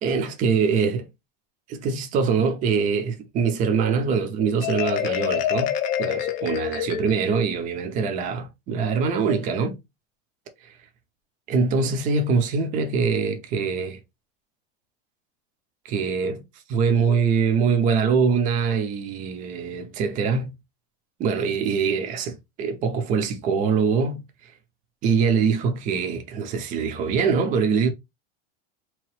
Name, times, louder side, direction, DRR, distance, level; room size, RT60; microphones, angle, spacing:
voice 1, 0.0-1.1 1.7-5.7 6.0-9.8 10.6-10.7 11.5-14.0 15.8-16.4 16.7-20.5 21.2-24.5 25.0-27.9, right 5 dB, 25° right, 0.5 m, -23 dB
Marimba xylophone, 4.6-7.4, left 10 dB, 25° left, 0.4 m, -26 dB
3.9 x 3.0 x 3.1 m
supercardioid pair, 160°, 30 cm